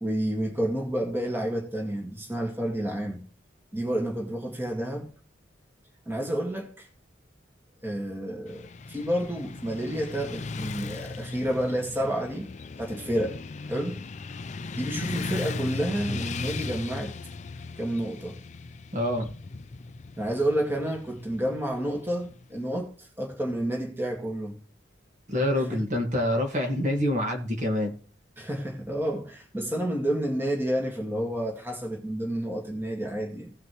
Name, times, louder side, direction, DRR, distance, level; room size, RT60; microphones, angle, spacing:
voice 1, 0.0-3.2 3.7-5.1 6.1-6.9 7.8-8.6 8.9-12.5 12.8-13.4 13.7-14.0 14.8-17.1 17.8-18.4 20.2-24.6 25.6-25.8 28.4-33.5, right 1 dB, 10° right, 1.9 m, -30 dB
Motorcycle / Traffic noise roadway noise, 8.5-22.6, left 3 dB, 40° left, 0.4 m, -37 dB
voice 2, 18.9-19.3 25.3-27.9, left 1 dB, 40° right, 1.7 m, -26 dB
17.0 x 5.8 x 3.1 m
head